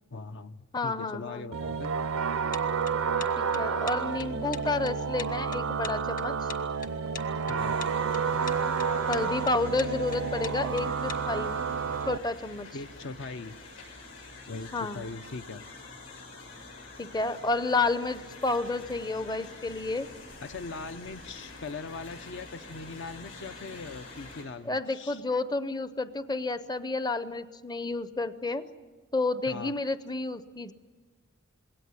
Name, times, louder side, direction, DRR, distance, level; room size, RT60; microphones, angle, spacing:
voice 1, 0.1-1.9 7.4-7.8 12.7-13.6 14.5-15.7 20.4-25.2 29.5-29.7, left 3 dB, 60° left, 10 dB, 0.7 m, -40 dB
voice 2, 0.7-1.5 3.4-6.3 9.1-11.5 12.1-12.7 14.7-15.1 17.0-20.1 24.6-28.7 29.1-30.7, left 3 dB, 20° left, 13 dB, 0.6 m, -30 dB
sound 1, 1.5-12.2, right 6 dB, 70° right, 0.6 m, -30 dB
sound 2, 2.5-11.2, left 7 dB, 40° left, 1.5 m, -42 dB
sound 3, 7.6-24.4, left 3 dB, 75° left, 7.4 m, -47 dB
21.5 x 18.0 x 9.6 m, 1.3 s
head